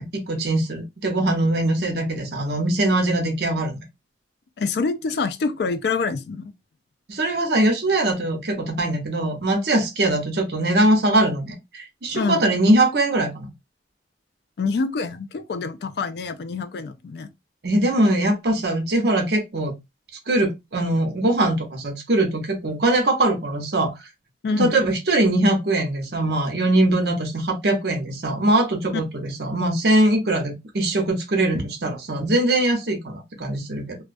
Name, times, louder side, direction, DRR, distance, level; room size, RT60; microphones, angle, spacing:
voice 1, 0.0-3.8 7.1-13.5 17.6-19.7 20.3-23.9 24.6-34.0, right 1 dB, 60° right, 0.7 m, -21 dB
voice 2, 4.6-6.5 12.1-12.4 14.6-17.3 24.4-24.7, left 4 dB, 60° left, 0.3 m, -26 dB
2.2 x 2.2 x 2.5 m
head